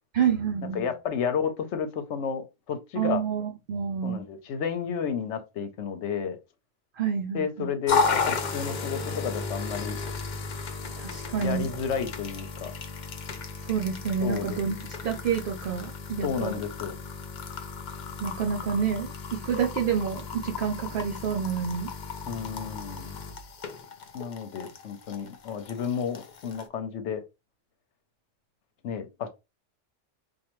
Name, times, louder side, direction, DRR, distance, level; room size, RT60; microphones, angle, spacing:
voice 1, 0.1-0.8 3.0-4.3 7.0-7.7 11.0-11.7 13.6-14.7 15.0-16.6 18.2-21.9, right 7 dB, 60° right, 0.6 m, -28 dB
voice 2, 0.7-3.2 4.0-6.4 7.3-10.0 11.4-12.7 14.2-14.6 16.2-16.9 22.3-23.2 24.1-27.2 28.8-29.3, left 7 dB, 70° left, 1.0 m, -31 dB
sound 1, 7.9-26.7, left 4 dB, 50° left, 0.6 m, -34 dB
4.5 x 2.4 x 3.0 m
omnidirectional pair, 1.2 m